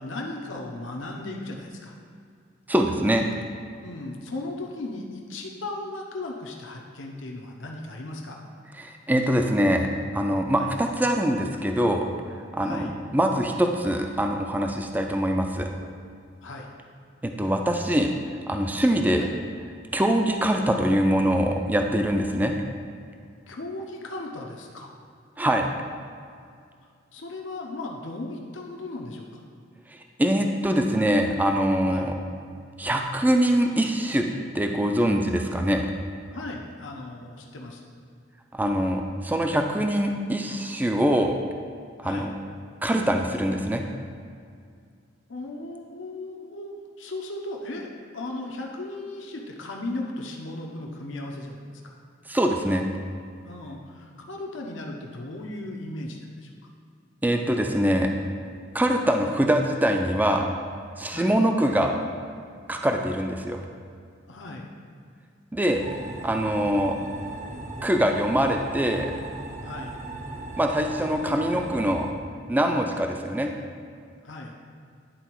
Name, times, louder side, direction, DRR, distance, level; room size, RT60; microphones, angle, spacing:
voice 1, 0.0-2.0 3.8-8.4 10.6-10.7 12.6-13.0 16.4-16.7 19.2-19.3 23.5-24.9 27.1-29.4 31.9-32.2 36.3-37.9 42.0-42.3 45.3-47.9 48.1-51.9 53.4-56.5 61.1-61.4 64.3-64.7 69.6-70.0 74.2-74.6, left 2 dB, 75° left, 0 dB, 0.8 m, -36 dB
voice 2, 2.7-3.3 8.8-15.7 17.2-18.1 18.5-19.3 19.9-22.5 25.4-25.7 30.2-32.2 32.8-34.3 34.5-35.9 38.5-41.4 42.0-42.3 42.8-43.8 52.3-52.9 57.2-58.1 58.7-60.5 61.0-61.9 62.7-63.6 65.5-65.8 66.2-67.0 67.8-69.1 70.6-72.1 72.5-73.5, equal, 10° right, 3 dB, 0.4 m, -23 dB
sound 1, 65.8-72.1, right 2 dB, 40° right, 0.8 m, -37 dB
10.0 x 4.0 x 4.5 m, 2.3 s
head